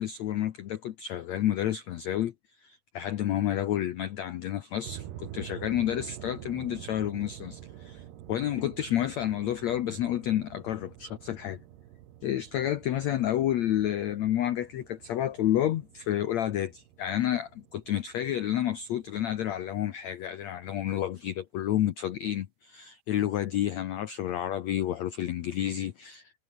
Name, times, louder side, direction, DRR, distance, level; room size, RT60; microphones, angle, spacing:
voice 1, 0.0-2.3 2.6-11.6 12.2-26.3, left 11 dB, 90° left, 1.5 m, -30 dB
sound 1, 4.8-20.1, right 12 dB, 80° right, 3.8 m, -47 dB
omnidirectional pair, 4.7 m